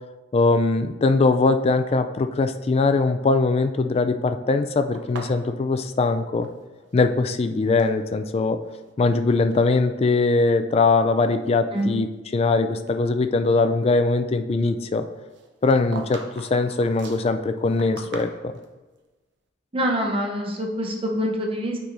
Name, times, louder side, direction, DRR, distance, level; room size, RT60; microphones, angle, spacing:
voice 1, 0.3-6.5 6.9-8.6 9.0-12.1 12.3-15.0 15.6-18.5, left 3 dB, 30° left, 8 dB, 0.3 m, -21 dB
sound 1, 4.9-6.9 7.2-8.0 8.6-9.2 9.5-9.7 10.4-10.5 11.0-12.5 12.9-13.0 15.3-18.7, right 3 dB, 65° right, 0.7 m, -42 dB
voice 2, 19.7-21.8, equal, 30° right, 0 dB, 0.7 m, -25 dB
8.9 x 4.8 x 2.6 m, 1.2 s
head